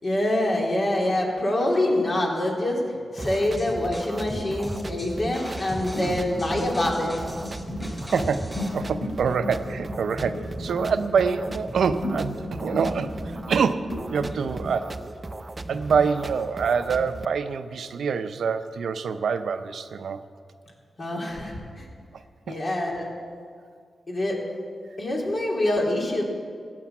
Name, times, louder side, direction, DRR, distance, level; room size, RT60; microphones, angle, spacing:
voice 1, 0.0-7.2 21.0-21.9 22.5-23.1 24.1-24.4 25.0-26.2, left 1 dB, 45° left, -2 dB, 3.5 m, -25 dB
sound 1, 3.2-8.7, equal, 5° left, 4.5 m, -38 dB
sound 2, 3.2-17.2, right 2 dB, 30° right, 0.6 m, -37 dB
sound 3, 5.7-14.8, left 1 dB, 75° left, 4.9 m, -35 dB
voice 2, 8.1-13.2 13.5-14.9 15.7-20.2 22.5-22.6, right 6 dB, 80° right, 10 dB, 0.6 m, -25 dB
15.0 x 9.2 x 7.2 m, 2.2 s
cardioid pair, 65°, 0 cm